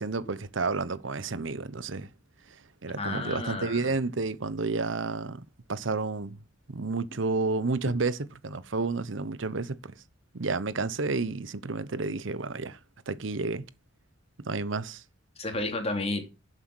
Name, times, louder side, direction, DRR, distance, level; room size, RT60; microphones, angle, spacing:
voice 1, 0.0-2.1 2.8-6.4 6.7-9.9 10.3-12.8 13.1-13.7 14.4-15.0, right 3 dB, 75° right, 0.9 m, -31 dB
voice 2, 3.0-3.9 15.4-16.2, left 2 dB, 30° left, 3.1 m, -31 dB
11.5 x 7.9 x 6.2 m
head